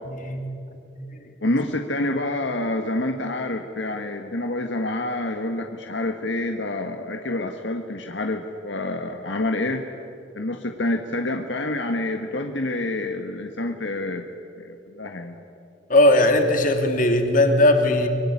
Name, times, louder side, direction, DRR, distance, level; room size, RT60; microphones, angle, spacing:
voice 1, 0.1-0.4 0.7-1.3 15.9-18.1, left 1 dB, 45° left, 5 dB, 2.9 m, -19 dB
voice 2, 1.4-9.8 10.3-14.2 14.6-15.4, left 2 dB, 70° left, 4 dB, 1.7 m, -27 dB
24.5 x 24.5 x 10.0 m, 2.6 s
head